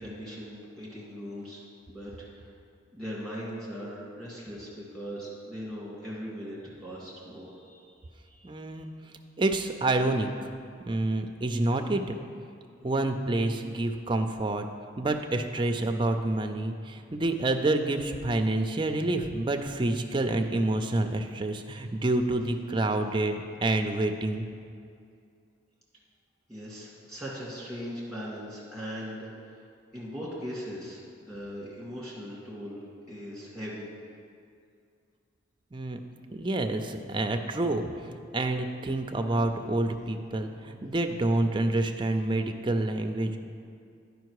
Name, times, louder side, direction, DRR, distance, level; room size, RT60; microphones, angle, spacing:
voice 1, 0.0-1.6 1.9-2.5 2.9-8.8 26.5-29.6 29.9-33.9, equal, 5° left, -6 dB, 1.9 m, -40 dB
voice 2, 8.4-8.9 9.4-10.5 10.8-12.0 12.8-14.6 15.0-24.5 35.7-36.0 36.3-43.4, right 2 dB, 25° right, 5 dB, 0.4 m, -28 dB
10.0 x 5.2 x 4.7 m, 2.3 s
head